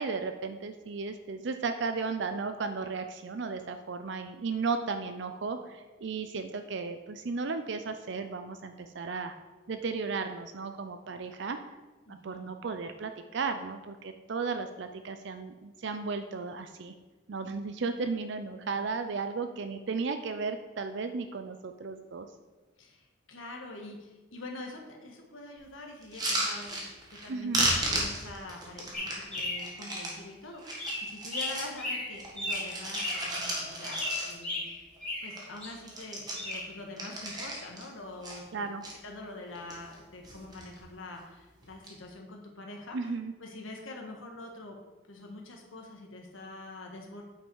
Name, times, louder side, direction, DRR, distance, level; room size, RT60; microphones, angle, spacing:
voice 1, 0.0-9.4 9.7-11.6 12.1-16.9 17.3-22.3 27.3-27.7 38.5-38.8 42.9-43.3, right 4 dB, 60° right, 8 dB, 0.5 m, -35 dB
voice 2, 12.1-12.5 18.5-18.9 22.8-26.9 27.2-34.8 35.2-38.7 39.0-43.1 43.4-44.8 45.1-47.2, left 2 dB, 75° left, 1 dB, 1.4 m, -45 dB
sound 1, 26.0-27.3 27.5-30.2 30.6-31.8 32.1-34.6 35.0-35.1 35.3-35.6 35.8-37.9 38.2-38.9 39.5-40.0 40.2-40.8 41.6-41.9, right 1 dB, 20° right, 1.6 m, -34 dB
sound 2, 28.9-30.0 30.7-33.3 33.8-35.7 36.3-36.7, left 2 dB, 5° left, 2.9 m, -35 dB
8.8 x 5.4 x 4.7 m, 1.2 s
head